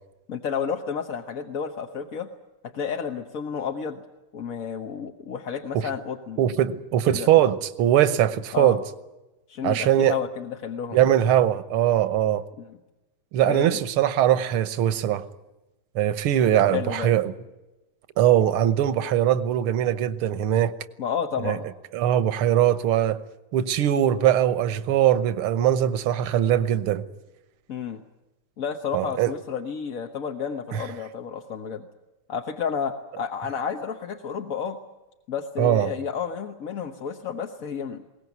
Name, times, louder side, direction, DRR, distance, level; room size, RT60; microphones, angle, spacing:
voice 1, 0.3-2.3 2.6-4.0 4.3-6.4 7.1-7.3 8.5-8.8 9.5-11.0 12.6-12.8 13.4-13.8 16.5-17.1 21.0-21.7 27.7-28.0 28.6-31.9 32.3-34.8 35.3-38.0, left 6 dB, 45° left, 1.3 m, -31 dB
voice 2, 6.4-8.8 9.6-10.2 10.9-12.4 13.3-15.3 16.0-17.3 18.2-20.7 21.4-21.6 21.9-23.2 23.5-27.0 28.9-29.3 30.7-30.8 35.6-35.9, right 11 dB, 80° right, 1.9 m, -21 dB
22.0 x 18.5 x 9.4 m
omnidirectional pair, 2.4 m